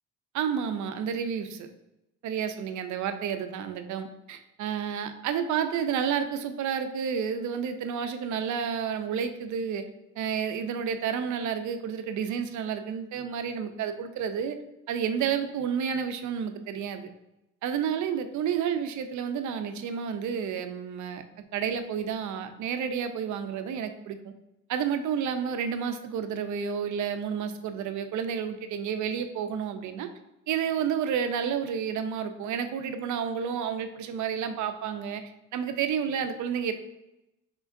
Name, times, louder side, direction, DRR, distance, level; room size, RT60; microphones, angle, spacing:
voice 1, 0.3-1.7 2.2-9.8 10.2-14.6 14.9-17.1 17.6-21.2 21.5-24.3 24.7-30.1 30.5-35.2 35.5-36.7, right 7 dB, 70° right, 9 dB, 0.5 m, -30 dB
4.8 x 3.7 x 2.5 m, 0.91 s
cardioid pair, 90°, 30 cm